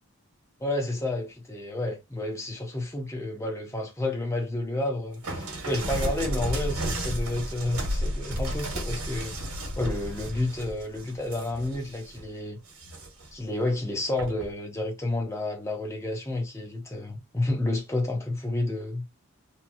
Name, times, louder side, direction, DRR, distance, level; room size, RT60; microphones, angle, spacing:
voice 1, 0.6-9.4 9.8-12.6 13.3-19.1, left 2 dB, 15° left, 0.6 m, -30 dB
sound 1, 5.2-12.2 12.7-13.3 14.2-14.5, equal, 80° right, 1.1 m, -32 dB
3.0 x 2.3 x 2.5 m
head